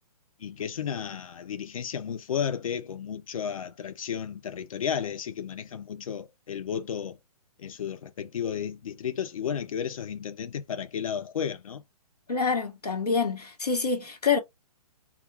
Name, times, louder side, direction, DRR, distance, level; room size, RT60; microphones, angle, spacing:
voice 1, 0.4-7.2 7.6-11.8, left 8 dB, 60° left, 0.5 m, -33 dB
voice 2, 12.3-14.4, left 5 dB, 80° left, 1.1 m, -26 dB
2.3 x 2.2 x 3.1 m
figure-of-eight pair, 130°, 20 cm